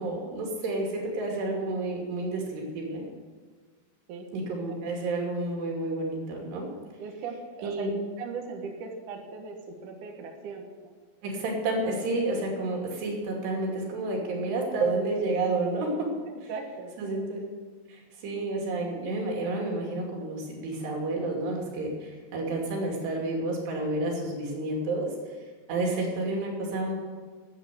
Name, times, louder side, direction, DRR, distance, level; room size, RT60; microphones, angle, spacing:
voice 1, 0.0-3.0 4.3-6.7 7.6-7.9 11.2-16.1 17.0-17.4 17.9-25.1 25.7-26.9, right 2 dB, 90° right, 0 dB, 4.8 m, -30 dB
voice 2, 7.0-7.9 8.2-10.9 16.3-16.9 25.8-25.9, right 5 dB, 60° right, 2 dB, 2.6 m, -39 dB
13.0 x 8.1 x 8.2 m, 1.5 s
omnidirectional pair, 4.7 m